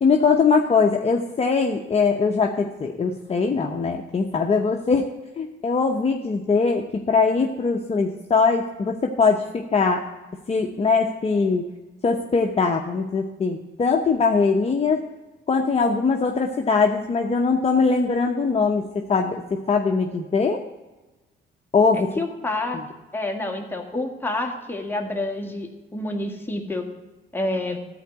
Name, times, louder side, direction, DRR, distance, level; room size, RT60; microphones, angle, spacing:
voice 1, 0.0-5.1 5.4-10.0 10.5-11.6 12.0-15.0 15.5-20.6 21.7-22.1 22.7-22.8, left 4 dB, 30° left, 2 dB, 0.9 m, -21 dB
voice 2, 21.9-22.8 23.1-26.9 27.3-27.8, left 2 dB, 10° left, 2 dB, 1.8 m, -28 dB
13.5 x 4.6 x 8.1 m, 1.1 s
cardioid pair, 90°, 20 cm